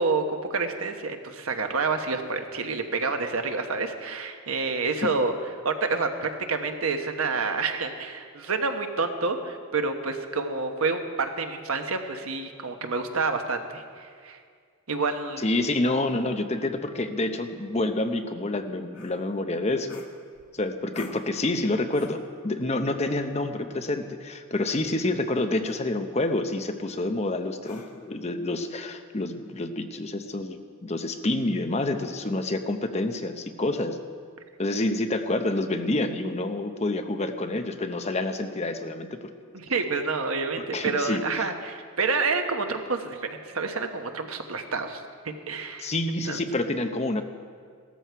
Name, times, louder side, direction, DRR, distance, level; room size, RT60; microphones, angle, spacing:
voice 1, 0.0-5.3 5.6-14.4 14.9-15.5 39.5-45.9 46.2-46.4, right 4 dB, 80° right, 6 dB, 1.2 m, -28 dB
voice 2, 15.4-20.0 20.5-34.0 34.6-39.2 40.6-41.5 45.8-47.2, left 2 dB, 30° left, 7 dB, 0.8 m, -28 dB
sound 1, 18.9-19.2 19.9-20.5 20.9-21.3 21.9-22.3 23.7-23.9 24.8-25.1 25.6-25.9 27.6-28.1, left 4 dB, 90° left, 1.6 m, -47 dB
15.5 x 13.5 x 4.6 m, 2.1 s
head